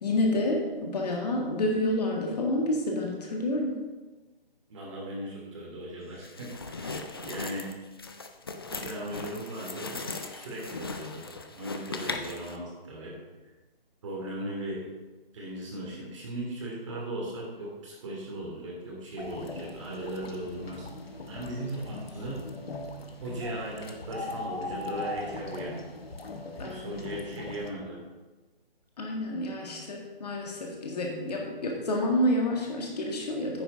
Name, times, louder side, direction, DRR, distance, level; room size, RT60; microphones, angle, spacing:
voice 1, 0.0-3.7 26.6-26.9 29.0-33.6, left 1 dB, 45° left, 0 dB, 1.9 m, -29 dB
voice 2, 4.7-7.7 8.7-10.0 10.3-13.1 14.0-14.9 15.3-20.9 21.3-22.5 23.2-25.8 26.6-28.0, right 1 dB, 30° right, -3 dB, 2.8 m, -38 dB
sound 1, 6.2-12.6, left 3 dB, 25° left, 0.4 m, -38 dB
sound 2, 19.2-27.7, left 2 dB, 90° left, 1.4 m, -40 dB
9.4 x 6.9 x 5.1 m, 1.2 s
hypercardioid pair, 160°, 29 cm